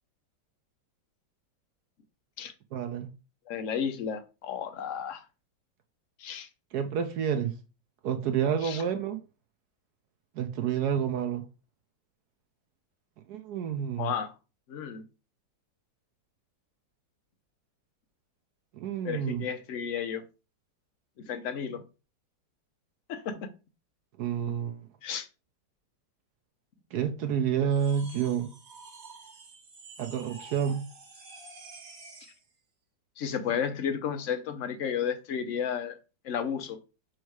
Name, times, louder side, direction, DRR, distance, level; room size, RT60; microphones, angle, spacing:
voice 1, 2.7-3.1 6.7-7.6 8.0-9.2 10.4-11.5 13.3-14.1 18.7-19.5 24.2-24.8 26.9-28.5 30.0-30.8, right 8 dB, 65° right, 1.1 m, -29 dB
voice 2, 3.5-5.2 6.2-6.5 8.6-8.8 14.0-14.3 14.7-15.0 19.0-20.2 21.3-21.8 23.1-23.5 25.0-25.3 33.2-36.0 36.2-36.8, left 7 dB, 55° left, 0.9 m, -32 dB
sound 1, 27.7-32.4, right 3 dB, 50° right, 1.6 m, -49 dB
6.3 x 3.1 x 4.7 m
omnidirectional pair, 2.0 m